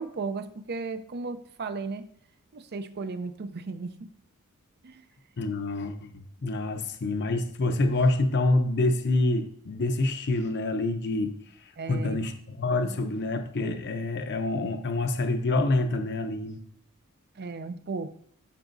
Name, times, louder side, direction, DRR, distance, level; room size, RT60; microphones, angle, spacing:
voice 1, 0.0-2.1 2.5-4.1 4.8-5.0 11.8-12.2 12.8-13.0 17.4-18.1, right 4 dB, 50° right, 11 dB, 0.6 m, -35 dB
voice 2, 5.4-16.6, left 2 dB, 50° left, 6 dB, 0.7 m, -27 dB
12.5 x 4.9 x 2.6 m, 0.65 s
head